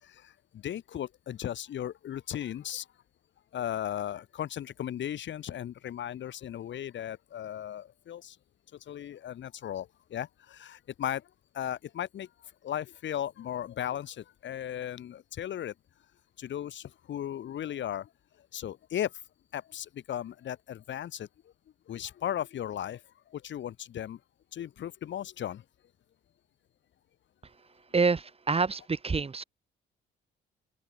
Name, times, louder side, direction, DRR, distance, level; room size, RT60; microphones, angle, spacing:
voice 1, 0.0-2.9 3.5-8.4 8.7-15.7 16.4-18.1 18.4-19.2 19.5-21.5 21.9-24.2 24.5-25.6, left 10 dB, 70° left, 4.2 m, -36 dB
voice 2, 27.9-29.4, right 4 dB, 30° right, 3.5 m, -27 dB
open air
cardioid pair, 90°, 20 cm